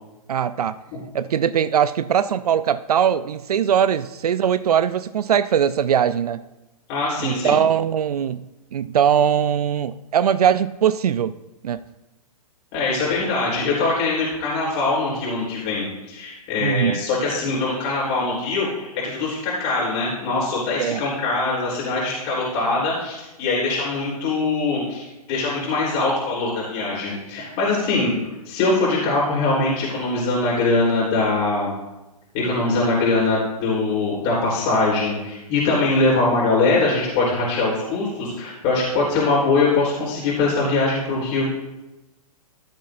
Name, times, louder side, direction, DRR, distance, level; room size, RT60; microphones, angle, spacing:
voice 1, 0.3-0.8 1.1-6.4 7.2-11.4 11.6-11.8 16.6-17.0 20.7-21.0, right 8 dB, 80° right, 14 dB, 0.5 m, -21 dB
voice 2, 6.9-7.6 12.7-28.2 28.5-31.7 32.3-41.5, left 3 dB, 40° left, -5 dB, 3.6 m, -22 dB
14.5 x 8.6 x 2.6 m, 1.0 s
hypercardioid pair, 130°, 19 cm